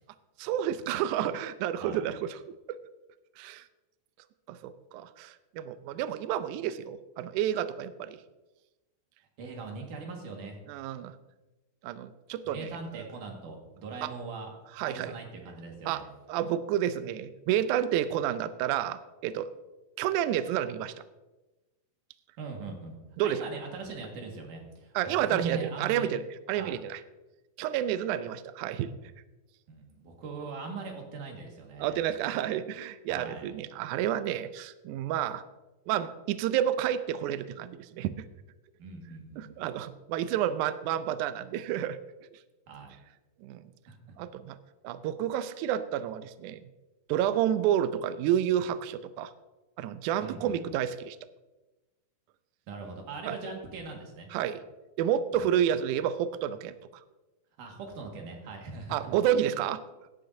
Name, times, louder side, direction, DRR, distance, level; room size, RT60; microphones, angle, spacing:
voice 1, 0.4-2.4 2.7-2.8 3.4-3.7 4.5-8.2 10.7-11.2 11.8-13.0 14.0-14.1 14.7-15.1 15.9-16.0 16.3-19.5 20.0-20.9 23.2-23.4 24.9-27.0 27.6-28.9 31.8-35.4 35.9-38.1 39.4-42.0 43.4-43.7 44.2-44.6 44.8-46.6 47.1-49.3 49.8-51.2 53.2-53.3 54.3-54.6 55.0-56.8 58.9-59.8, right 10 dB, 90° right, 12 dB, 1.7 m, -30 dB
voice 2, 9.4-10.6 12.4-16.0 22.4-23.0 23.2-26.1 26.6-26.8 29.7-32.0 33.1-33.5 38.8-39.7 42.7-43.0 43.9-44.2 50.2-50.6 52.7-54.3 55.3-55.5 57.6-59.1, right 4 dB, 65° right, 1 dB, 3.1 m, -41 dB
16.5 x 9.8 x 2.7 m, 1.1 s
omnidirectional pair, 4.1 m